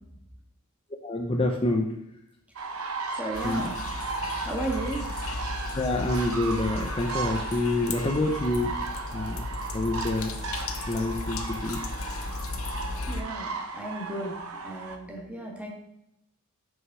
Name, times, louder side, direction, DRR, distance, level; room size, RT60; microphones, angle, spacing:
voice 1, 1.0-1.9 3.4-3.8 5.8-8.7 9.1-9.4 9.7-10.3 10.9-11.8, left 2 dB, 25° left, 2 dB, 0.7 m, -27 dB
sound 1, 2.6-15.0, right 4 dB, 75° right, 0.9 m, -36 dB
voice 2, 3.2-3.7 4.4-5.0 13.1-14.4 14.6-15.7, right 1 dB, 5° right, -1 dB, 1.8 m, -34 dB
sound 2, 3.3-13.2, left 3 dB, 70° left, 0.9 m, -35 dB
6.4 x 5.6 x 6.1 m, 0.82 s
head